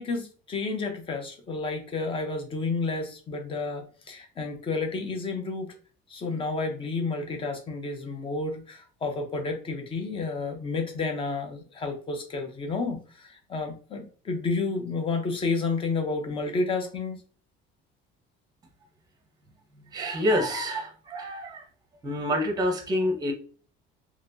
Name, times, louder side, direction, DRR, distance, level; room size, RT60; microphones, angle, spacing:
voice 1, 0.0-5.7 6.1-17.2, left 3 dB, 25° left, 4 dB, 0.7 m, -31 dB
voice 2, 19.9-21.7 22.0-23.3, equal, 20° right, 4 dB, 0.8 m, -27 dB
4.2 x 3.0 x 2.6 m, 0.40 s
cardioid pair, 165°, 21 cm